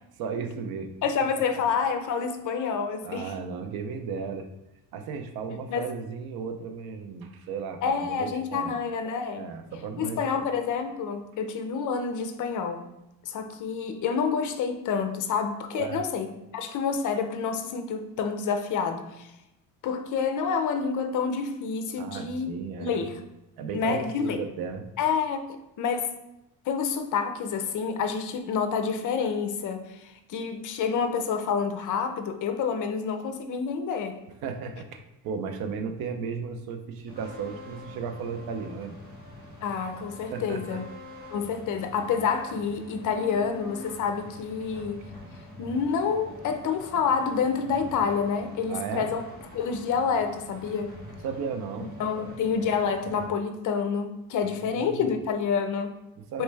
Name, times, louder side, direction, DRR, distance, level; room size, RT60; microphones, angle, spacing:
voice 1, 0.2-0.9 3.0-4.5 4.9-8.8 9.4-10.5 15.7-16.0 22.0-23.0 23.6-24.8 34.4-38.9 40.3-40.8 48.7-49.1 51.2-51.9 52.2-52.4 54.6-55.1 56.2-56.4, right 5 dB, 65° right, 7 dB, 0.6 m, -35 dB
voice 2, 1.0-3.3 5.7-5.9 7.8-9.5 10.0-12.8 13.2-16.3 16.5-19.3 19.8-22.5 22.8-23.2 23.7-24.4 25.0-25.5 25.8-26.1 26.7-34.2 39.6-40.8 41.3-45.1 45.6-49.2 49.5-51.0 52.0-56.0 56.3-56.4, left 6 dB, 50° left, 7 dB, 0.6 m, -28 dB
sound 1, 37.1-53.2, left 1 dB, 25° right, 1.3 m, -45 dB
4.4 x 3.2 x 3.3 m, 0.90 s
cardioid pair, 130°, 39 cm